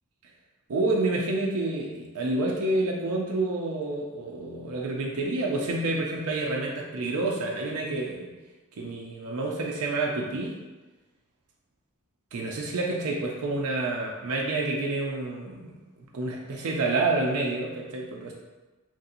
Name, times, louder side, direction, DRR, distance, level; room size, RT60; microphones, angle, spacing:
voice 1, 0.7-8.3 8.8-10.6 12.3-18.3, right 2 dB, 85° right, -1 dB, 0.4 m, -28 dB
3.2 x 2.6 x 2.6 m, 1.2 s
head